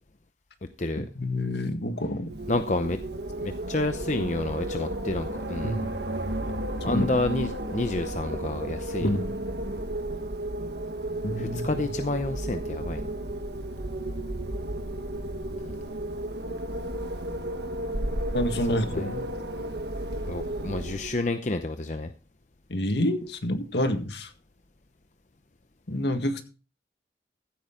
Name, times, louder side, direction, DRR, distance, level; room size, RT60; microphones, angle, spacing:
voice 1, 1.2-2.3 5.6-5.9 6.9-7.1 9.0-9.3 11.2-11.8 18.3-19.1 22.7-24.3 25.9-26.4, left 1 dB, 70° left, 1.7 m, -28 dB
Wind, 2.2-21.3, right 1 dB, 70° right, 1.4 m, -33 dB
voice 2, 2.5-3.0 3.4-5.8 6.8-9.1 11.4-13.1 18.7-19.3 20.3-22.1, left 2 dB, 40° left, 0.7 m, -29 dB
15.0 x 8.7 x 3.8 m
head